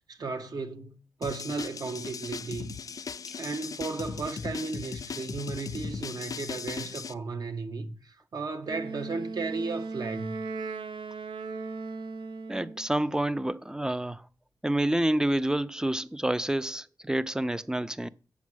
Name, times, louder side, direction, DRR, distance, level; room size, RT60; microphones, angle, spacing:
voice 1, 0.1-2.8 3.4-10.4, right 4 dB, 55° right, 1.4 m, -35 dB
sound 1, 1.2-7.1, left 5 dB, 50° left, 0.5 m, -38 dB
Wind instrument woodwind instrument, 8.6-12.9, right 3 dB, 90° right, 0.9 m, -37 dB
voice 2, 12.5-14.2 14.6-18.1, right 1 dB, 10° right, 0.5 m, -28 dB
8.4 x 7.3 x 6.3 m
wide cardioid pair, 100°, 8 cm